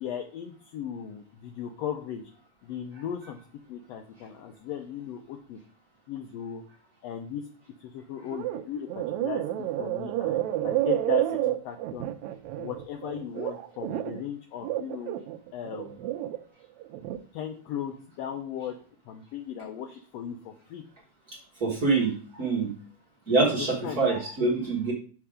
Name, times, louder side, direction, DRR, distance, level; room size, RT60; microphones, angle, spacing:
voice 1, 0.0-2.2 2.6-3.4 3.7-5.6 6.1-6.6 7.0-7.4 7.8-9.4 9.8-12.1 12.6-15.1 15.5-16.0 17.3-18.8 19.1-20.8 23.3-24.0, left 9 dB, 80° left, 3 dB, 1.4 m, -37 dB
sound 1, 8.3-8.6 8.9-14.2 14.6-16.4 16.8-17.2, right 14 dB, 80° right, 1.7 m, -30 dB
voice 2, 21.3-22.7 23.3-24.9, right 3 dB, 50° right, -3 dB, 1.1 m, -26 dB
6.0 x 4.6 x 4.9 m, 0.43 s
omnidirectional pair, 3.6 m